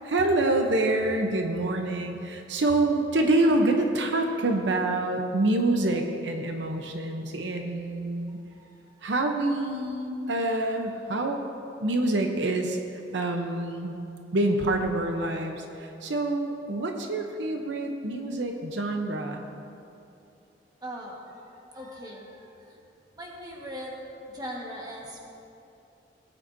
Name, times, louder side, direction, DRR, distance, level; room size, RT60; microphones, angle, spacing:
voice 1, 0.0-8.4 9.0-11.4 11.8-13.9 14.3-19.5, right 2 dB, 75° right, 4 dB, 0.8 m, -26 dB
voice 2, 8.5-9.0 20.8-22.8 23.1-23.9 24.3-25.2, equal, 20° right, -2 dB, 1.4 m, -40 dB
18.0 x 9.0 x 2.7 m, 2.7 s
head